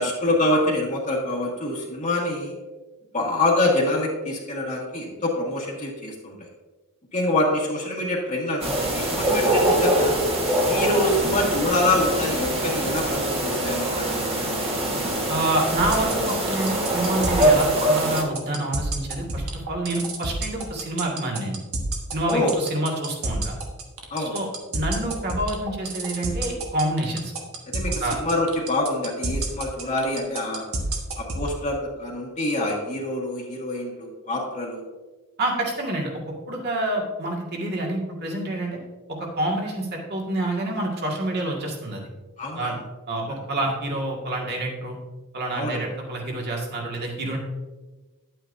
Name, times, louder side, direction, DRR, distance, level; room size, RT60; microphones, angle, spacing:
voice 1, 0.0-2.5 3.1-6.3 7.1-10.1 10.6-14.1 14.4-14.5 22.3-22.5 24.1-24.4 27.7-30.7 31.2-34.8 42.4-42.7 45.5-45.8, left 1 dB, 35° left, -3 dB, 1.5 m, -25 dB
sound 1, 8.6-18.2, right 1 dB, 25° right, 1.4 m, -23 dB
voice 2, 15.3-21.6 22.1-23.6 24.2-27.3 28.0-28.2 35.4-36.2 36.5-38.8 39.1-42.0 42.6-42.8 43.1-45.0 45.3-47.4, right 1 dB, 50° right, -1 dB, 1.9 m, -27 dB
sound 2, 15.8-31.5, right 3 dB, 70° right, 1.4 m, -29 dB
10.0 x 8.8 x 2.6 m, 1.2 s
head